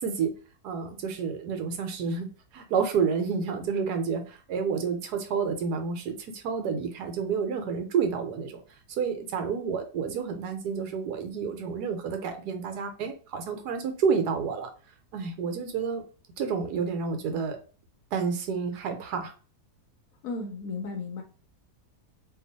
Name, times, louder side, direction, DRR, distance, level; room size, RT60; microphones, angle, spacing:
voice 1, 0.0-0.3 0.6-8.6 9.0-14.7 15.1-16.0 16.4-17.6 18.1-19.3, right 6 dB, 75° right, 6 dB, 1.2 m, -29 dB
voice 2, 20.2-21.2, left 3 dB, 65° left, 3 dB, 1.0 m, -34 dB
2.9 x 2.4 x 3.9 m, 0.36 s
omnidirectional pair, 1.8 m